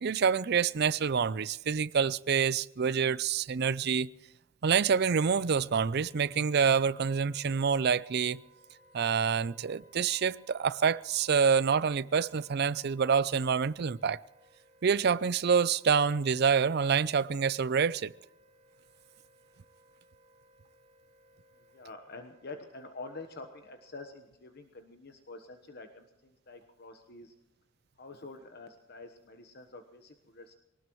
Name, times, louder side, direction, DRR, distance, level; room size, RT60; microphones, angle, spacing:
voice 1, 0.0-4.1 4.6-8.4 8.9-14.2 14.8-18.1, right 6 dB, 55° right, 0.5 m, -27 dB
Wind instrument woodwind instrument, 6.0-24.2, right 1 dB, 40° right, 6.3 m, -63 dB
voice 2, 21.5-27.3 28.0-30.6, left 3 dB, 55° left, 1.1 m, -47 dB
23.5 x 18.5 x 3.1 m
head